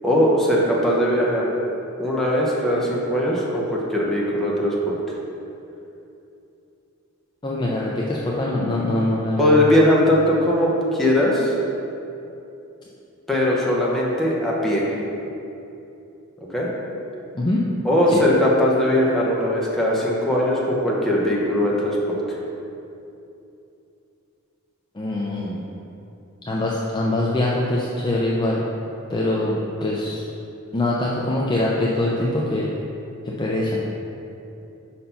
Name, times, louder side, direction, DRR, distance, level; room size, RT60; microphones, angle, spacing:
voice 1, 0.0-1.5 2.0-5.0 9.4-11.5 13.3-14.9 16.5-16.7 17.8-22.4, equal, ahead, -5 dB, 0.9 m, -20 dB
voice 2, 7.4-9.6 17.3-17.7 24.9-25.6 26.5-28.6 29.1-30.2 30.7-32.7 33.2-33.8, left 1 dB, 20° left, -5 dB, 0.5 m, -23 dB
5.2 x 4.3 x 5.6 m, 2.8 s
head